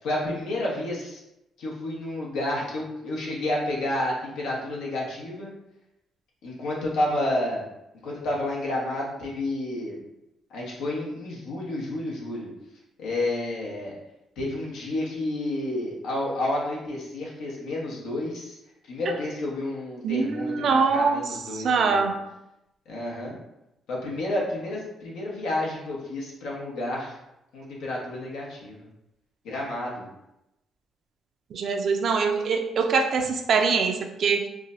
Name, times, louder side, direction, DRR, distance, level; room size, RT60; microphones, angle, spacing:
voice 1, 0.0-1.2 1.6-5.5 6.4-7.6 8.0-10.0 10.5-12.5 13.0-13.9 14.4-18.6 18.9-22.1 22.9-23.4 23.9-27.1 27.5-28.8 29.4-30.1, left 1 dB, 85° left, -3 dB, 1.0 m, -30 dB
voice 2, 20.0-21.2 21.5-22.2 31.5-34.5, right 5 dB, 60° right, 4 dB, 0.4 m, -23 dB
4.8 x 2.2 x 2.5 m, 0.89 s
cardioid pair, 90°, 0 cm